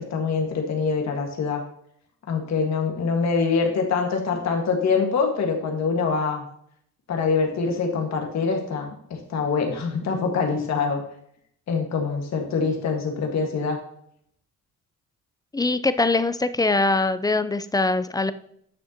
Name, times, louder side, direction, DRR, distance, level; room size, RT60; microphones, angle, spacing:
voice 1, 0.0-1.6 2.3-6.4 7.1-11.0 11.7-13.8, left 5 dB, 65° left, 2 dB, 1.6 m, -24 dB
voice 2, 15.5-18.3, left 3 dB, 15° left, 13 dB, 0.5 m, -22 dB
9.6 x 6.4 x 2.9 m, 0.68 s
cardioid pair, 90°, 30 cm